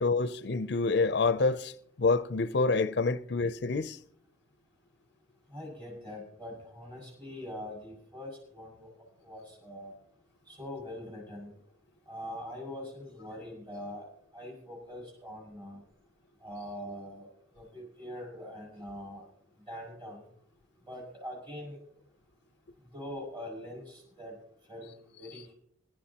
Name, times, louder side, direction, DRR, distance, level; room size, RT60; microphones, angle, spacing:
voice 1, 0.0-1.7 2.0-4.0, left 3 dB, 60° left, 0.5 m, -27 dB
voice 2, 5.5-8.9 9.2-9.9 10.5-11.5 12.1-14.1 14.3-15.8 16.4-17.3 17.5-19.2 19.7-20.2 20.8-21.8 22.9-24.4 24.7-25.5, left 1 dB, 25° right, 6.3 m, -43 dB
24.5 x 11.5 x 2.9 m
head